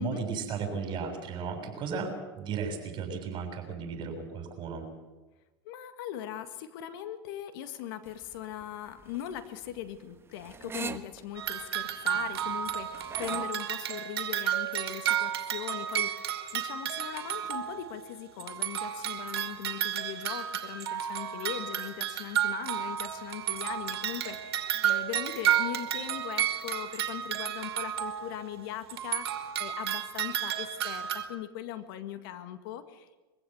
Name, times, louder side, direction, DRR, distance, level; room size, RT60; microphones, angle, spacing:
voice 1, 0.0-4.9, right 5 dB, 35° right, 4 dB, 7.1 m, -35 dB
voice 2, 5.7-33.2, left 11 dB, 65° left, 9 dB, 2.0 m, -40 dB
sound 1, 8.0-13.5, right 5 dB, 20° right, 1.3 m, -42 dB
sound 2, 11.4-18.1 18.4-28.6 28.9-31.3, right 10 dB, 80° right, 2.4 m, -32 dB
23.0 x 15.5 x 8.0 m, 1.2 s
hypercardioid pair, 100°, 13 cm